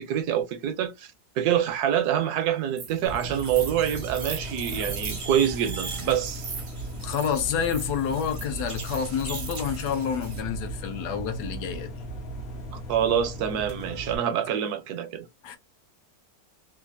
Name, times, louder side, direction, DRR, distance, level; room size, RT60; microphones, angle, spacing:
voice 1, 0.0-6.5 12.7-15.3, right 9 dB, 75° right, 1.1 m, -26 dB
sound 1, 2.8-10.4, right 4 dB, 50° right, 0.6 m, -39 dB
sound 2, 3.1-14.2, right 1 dB, 55° left, 0.7 m, -37 dB
voice 2, 7.0-12.0 15.4-15.6, left 7 dB, 70° left, 1.2 m, -29 dB
3.2 x 2.4 x 2.4 m
omnidirectional pair, 1.9 m